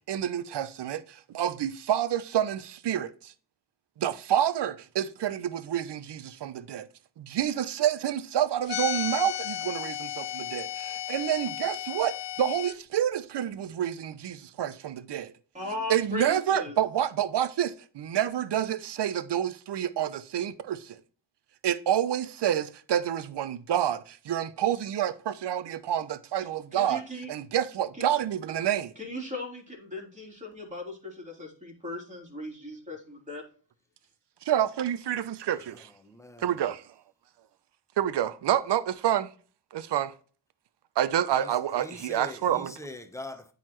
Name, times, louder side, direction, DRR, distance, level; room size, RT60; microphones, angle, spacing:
voice 1, 0.1-3.3 4.0-6.9 7.2-15.3 15.9-21.0 21.6-27.0 27.3-28.9 34.4-35.9 36.4-36.8 38.0-39.3 39.7-40.1 41.0-42.7, right 10 dB, 60° right, 0.7 m, -28 dB
sound 1, 8.7-12.7, left 13 dB, 65° left, 0.5 m, -34 dB
voice 2, 15.5-16.8 26.7-27.3 27.9-28.0 28.9-33.4, left 2 dB, 15° right, 3.4 m, -38 dB
voice 3, 35.4-36.7 41.3-43.5, left 1 dB, 5° left, 1.0 m, -44 dB
8.9 x 4.0 x 3.1 m
cardioid pair, 80°, 48 cm